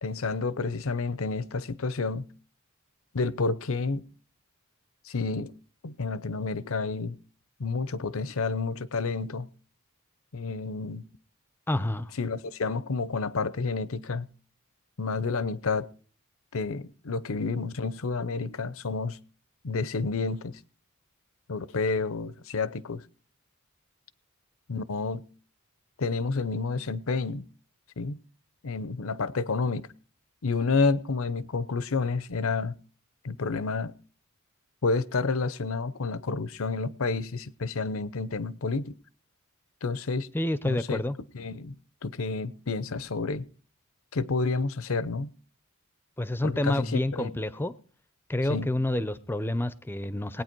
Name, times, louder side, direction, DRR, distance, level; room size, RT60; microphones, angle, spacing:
voice 1, 0.0-2.3 3.1-4.0 5.0-5.5 5.8-7.2 7.6-9.5 10.3-11.1 12.2-14.3 15.0-15.9 16.5-19.2 19.6-20.6 21.5-23.0 24.7-25.2 26.0-27.5 28.0-28.2 28.6-29.9 30.4-32.8 33.2-33.9 34.8-39.0 39.8-40.3 40.6-41.0 41.3-41.8 42.0-43.4 44.1-45.3 46.4-47.3 48.5-48.7, left 4 dB, 70° left, 0.7 m, -29 dB
voice 2, 11.7-12.1 40.3-41.2 46.2-47.7 48.3-50.4, left 1 dB, 10° left, 0.5 m, -28 dB
19.5 x 9.2 x 4.5 m
head